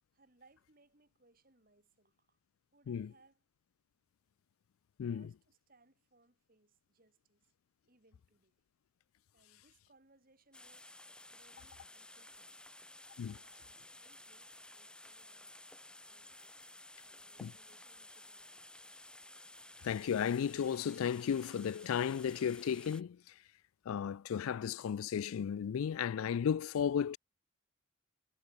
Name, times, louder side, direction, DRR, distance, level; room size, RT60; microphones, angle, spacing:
voice 1, 0.1-2.4 2.7-3.4 5.0-7.5 7.8-8.5 9.3-12.6 13.4-15.6 16.0-16.7 17.0-18.9, right 2 dB, 40° right, 2.4 m, -69 dB
sound 1, 10.5-23.0, left 1 dB, 5° left, 1.8 m, -55 dB
voice 2, 19.8-23.2 23.9-27.2, left 8 dB, 80° left, 0.3 m, -34 dB
head